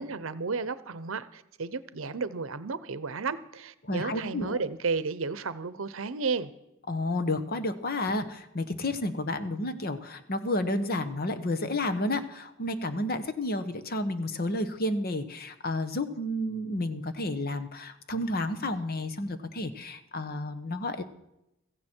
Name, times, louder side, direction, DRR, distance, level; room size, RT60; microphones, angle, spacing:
voice 1, 0.0-6.5, right 4 dB, 70° right, 15 dB, 0.8 m, -33 dB
voice 2, 3.8-4.6 6.9-21.0, left 1 dB, 45° left, 10 dB, 1.1 m, -31 dB
16.0 x 15.0 x 4.5 m, 0.88 s
head